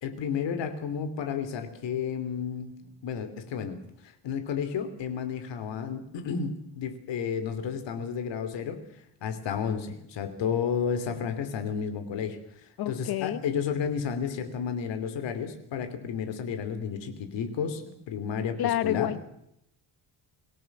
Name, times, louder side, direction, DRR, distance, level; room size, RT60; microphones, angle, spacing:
voice 1, 0.0-3.8 4.0-8.8 9.2-19.1, left 7 dB, 85° left, 9 dB, 3.1 m, -32 dB
voice 2, 12.8-13.4 18.6-19.2, left 12 dB, 60° left, 16 dB, 0.9 m, -28 dB
25.5 x 18.0 x 6.0 m, 0.77 s
cardioid pair, 180°, 42 cm